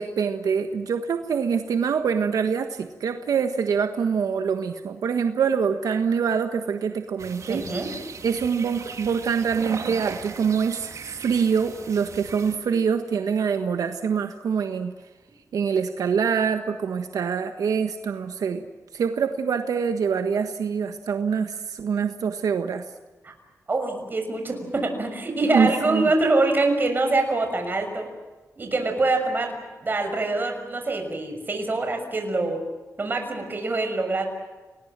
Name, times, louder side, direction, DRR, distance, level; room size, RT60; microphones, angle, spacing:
voice 1, 0.0-7.6 8.2-14.9 15.5-18.7 18.9-22.8 25.5-26.1, right 6 dB, 85° right, 7 dB, 1.5 m, -25 dB
sound 1, 7.2-12.6, right 5 dB, 65° right, 2.7 m, -38 dB
voice 2, 7.5-7.9 23.2-23.3 23.7-28.1 28.6-32.6 33.0-34.3, right 2 dB, 35° right, 4 dB, 6.3 m, -25 dB
30.0 x 20.5 x 7.6 m, 1.2 s
wide cardioid pair, 130°, 6 cm